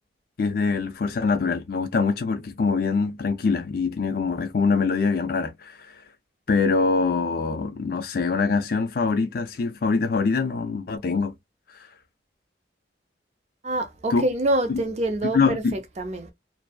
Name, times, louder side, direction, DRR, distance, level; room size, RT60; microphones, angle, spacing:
voice 1, 0.4-6.0 6.5-11.3 11.7-11.9 14.1-14.2 14.7-14.8 15.3-15.7, left 4 dB, 50° left, 0.4 m, -24 dB
voice 2, 13.6-16.3, right 1 dB, 35° right, 0.5 m, -26 dB
2.6 x 2.2 x 2.2 m
head